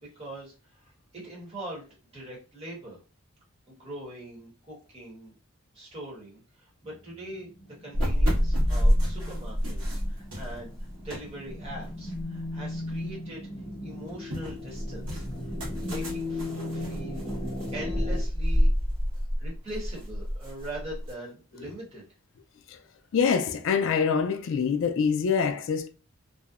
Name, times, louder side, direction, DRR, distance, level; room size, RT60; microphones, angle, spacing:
voice 1, 0.0-3.0 3.7-5.3 5.7-10.7 11.0-13.5 13.8-15.5 15.8-17.5 17.7-18.7 19.4-22.0, right 1 dB, 25° right, 1.0 m, -42 dB
sound 1, 6.9-18.2, left 2 dB, 5° left, 0.9 m, -38 dB
sound 2, 7.9-13.1 13.5-21.1, equal, 70° right, 1.2 m, -28 dB
voice 2, 23.1-25.9, left 6 dB, 60° left, 0.3 m, -25 dB
2.7 x 2.0 x 2.4 m
head